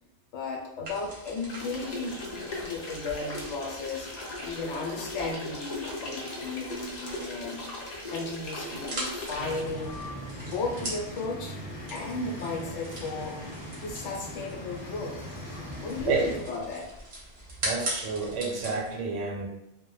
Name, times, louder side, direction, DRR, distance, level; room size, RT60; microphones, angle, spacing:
voice 1, 0.3-4.1 4.4-7.6 8.1-10.0 10.4-11.6 11.9-13.4 13.7-15.2 15.8-16.9, left 3 dB, 75° left, 0 dB, 0.9 m, -35 dB
sound 1, 0.8-18.9, right 1 dB, 40° right, 0.8 m, -42 dB
sound 2, 1.5-9.6, left 2 dB, 60° left, 0.4 m, -38 dB
sound 3, 9.4-16.4, equal, 25° left, 0.8 m, -40 dB
voice 2, 17.6-19.5, right 4 dB, 80° right, 0 dB, 1.0 m, -29 dB
2.1 x 2.1 x 3.0 m, 0.84 s
omnidirectional pair, 1.3 m